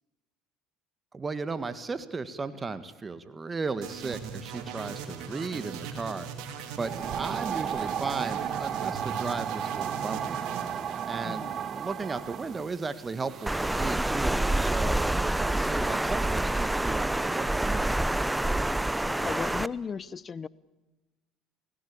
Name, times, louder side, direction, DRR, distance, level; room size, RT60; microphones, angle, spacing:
voice 1, 1.1-6.3 6.8-10.4 11.0-17.9, right 4 dB, 25° right, 12 dB, 1.7 m, -35 dB
sound 1, 3.8-11.9, right 6 dB, 70° right, 3.9 m, -40 dB
sound 2, 6.8-13.9, right 8 dB, 45° right, 1.8 m, -34 dB
voice 2, 11.2-11.6 19.0-20.5, left 6 dB, 35° left, 20 dB, 0.9 m, -36 dB
Water, 13.5-19.7, right 1 dB, 10° right, 0.8 m, -27 dB
29.0 x 17.0 x 8.6 m, 1.1 s
supercardioid pair, 80°, 0 cm